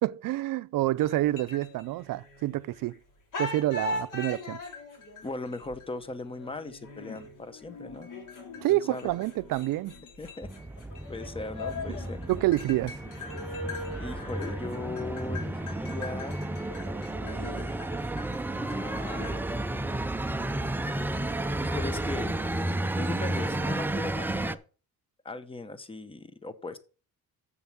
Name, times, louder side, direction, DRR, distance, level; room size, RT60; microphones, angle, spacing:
voice 1, 0.0-2.9 3.4-4.6 8.6-10.0 12.3-13.0, right 16 dB, 65° right, 0.5 m, -28 dB
sound 1, 1.0-2.9 3.3-19.3, left 2 dB, 60° left, 3.2 m, -41 dB
voice 2, 5.2-8.1 8.7-9.1 10.2-10.5 11.1-12.2 14.0-16.4 17.6-17.7 18.4-19.7 21.6-22.4 23.0-24.6 25.2-26.8, left 3 dB, 15° left, 0.8 m, -39 dB
sound 2, 10.4-24.6, right 1 dB, 5° right, 0.3 m, -32 dB
7.3 x 7.0 x 5.9 m
cardioid pair, 135°, 35 cm